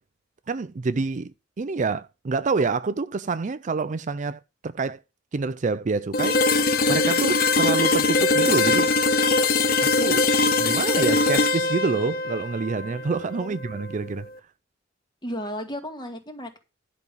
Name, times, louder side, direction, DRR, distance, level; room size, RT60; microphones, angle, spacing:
voice 1, 0.5-5.0 5.3-6.4 6.9-8.9 9.8-14.3, right 4 dB, 40° right, 0.4 m, -27 dB
sound 1, 6.1-14.0, left 3 dB, 50° left, 1.1 m, -22 dB
voice 2, 15.2-16.6, equal, 25° left, 2.2 m, -34 dB
11.0 x 5.4 x 7.1 m
head